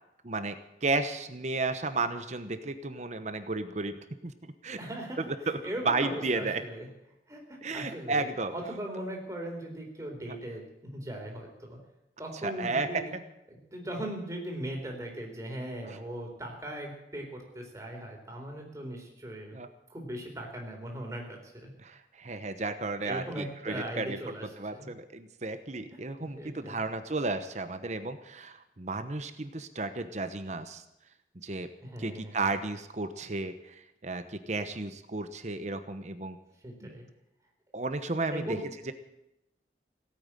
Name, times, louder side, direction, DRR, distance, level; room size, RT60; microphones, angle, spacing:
voice 1, 0.2-4.8 5.2-5.6 5.8-6.6 7.6-8.5 10.3-10.4 12.4-13.0 15.8-16.0 19.5-19.7 21.8-24.2 24.6-30.8 31.3-31.7 32.0-36.4 36.8-37.0 37.7-38.9, right 3 dB, 40° right, 9 dB, 1.0 m, -33 dB
voice 2, 4.7-5.2 5.6-6.9 7.3-11.8 12.2-13.1 13.7-19.6 19.9-21.7 23.0-24.9 26.2-26.8 31.8-32.4 36.6-37.1 38.3-38.6, right 1 dB, 20° right, 0 dB, 4.0 m, -39 dB
17.5 x 8.9 x 9.0 m, 0.87 s
head